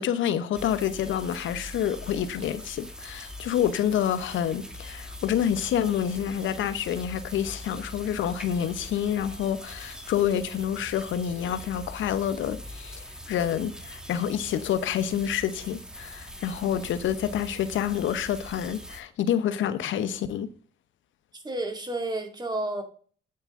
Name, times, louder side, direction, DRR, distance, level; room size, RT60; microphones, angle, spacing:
voice 1, 0.0-20.5, left 9 dB, 75° left, 0.9 m, -28 dB
sound 1, 0.5-19.0, equal, 5° right, 1.5 m, -42 dB
voice 2, 21.3-22.8, right 2 dB, 20° right, 2.4 m, -31 dB
8.8 x 8.7 x 3.7 m
cardioid pair, 90°, 20 cm